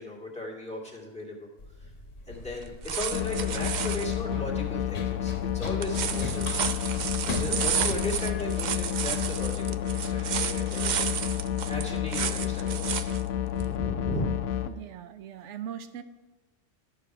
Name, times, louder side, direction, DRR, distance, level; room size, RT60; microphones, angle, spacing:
voice 1, 0.0-1.5 1.8-1.9 2.3-6.8 7.3-11.3 11.7-13.1 13.5-14.4, left 1 dB, 5° left, -3 dB, 2.1 m, -36 dB
Run, 1.6-9.5, left 2 dB, 60° left, 1.4 m, -40 dB
sound 1, 2.6-4.1 5.7-13.2 13.6-13.7, right 8 dB, 60° right, 0.4 m, -32 dB
sound 2, 3.1-14.7, left 11 dB, 75° left, 1.0 m, -30 dB
voice 2, 14.6-16.0, right 9 dB, 75° right, 11 dB, 1.0 m, -40 dB
12.5 x 6.7 x 4.8 m, 1.2 s
omnidirectional pair, 1.3 m